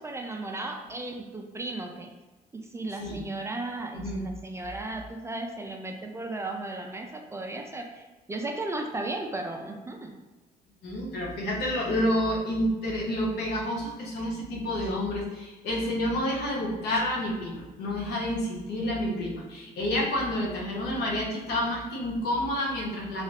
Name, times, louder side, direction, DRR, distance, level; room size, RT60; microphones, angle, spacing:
voice 1, 0.0-2.1 2.5-10.1, right 2 dB, 15° right, 3 dB, 0.4 m, -35 dB
voice 2, 3.9-4.3 10.8-23.2, left 1 dB, 75° left, -2 dB, 0.9 m, -29 dB
3.2 x 2.6 x 3.2 m, 1.2 s
cardioid pair, 110°, 17 cm